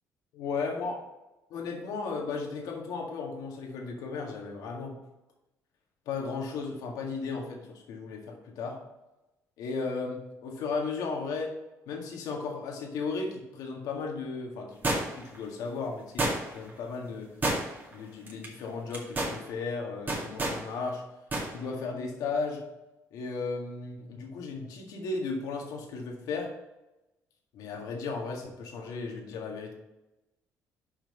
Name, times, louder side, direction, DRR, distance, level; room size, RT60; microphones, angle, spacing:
voice 1, 0.3-1.0 1.5-5.0 6.1-8.9 9.6-11.6 11.9-17.3 17.9-21.0 21.5-22.7 23.1-26.6 27.5-29.7, left 4 dB, 80° left, 1 dB, 1.8 m, -35 dB
sound 1, 14.8-15.4 16.2-16.7 17.4-17.9 18.3-18.5 18.9-19.4 20.1-20.6 21.3-21.5 21.8-21.9, right 2 dB, 30° right, 2.1 m, -29 dB
5.8 x 5.2 x 6.6 m, 0.99 s
cardioid pair, 90°, 6 cm